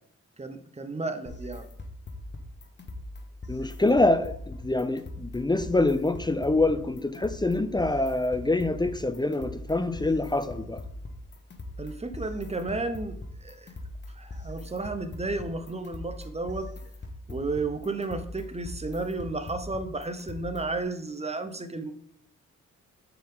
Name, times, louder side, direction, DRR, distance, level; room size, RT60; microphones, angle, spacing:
voice 1, 0.4-1.7 11.8-13.7 14.1-16.7 17.3-21.9, right 3 dB, 20° right, 0.9 m, -33 dB
sound 1, 1.3-20.8, left 1 dB, 35° left, 1.1 m, -41 dB
voice 2, 3.5-10.8, left 2 dB, 15° left, 0.5 m, -25 dB
7.0 x 4.7 x 3.9 m
supercardioid pair, 55°, 32 cm